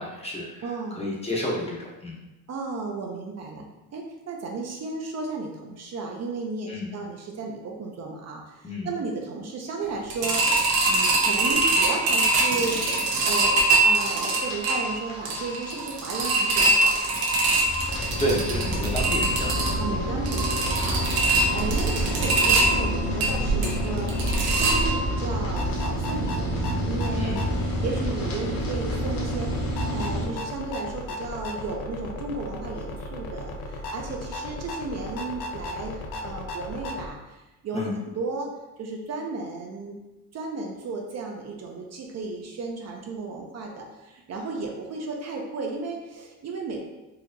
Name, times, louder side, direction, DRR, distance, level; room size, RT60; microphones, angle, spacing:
voice 1, 0.0-2.2 6.7-6.9 8.6-8.9 18.2-20.0 27.1-27.4 37.7-37.9, equal, 20° left, -3 dB, 0.6 m, -30 dB
voice 2, 0.6-1.0 2.5-3.7 3.9-17.1 19.7-27.4 27.8-37.8 38.2-38.5 38.8-40.0 40.3-46.8, right 3 dB, 45° right, 1 dB, 0.5 m, -34 dB
sound 1, 10.1-25.3 25.6-25.7 26.1-26.2, right 2 dB, 90° right, 0.8 m, -23 dB
sound 2, 10.9-30.2, equal, 65° left, 1.2 m, -30 dB
sound 3, 17.9-37.1, left 2 dB, 85° left, 0.5 m, -36 dB
4.2 x 2.7 x 2.6 m, 1.0 s
cardioid pair, 155°, 35 cm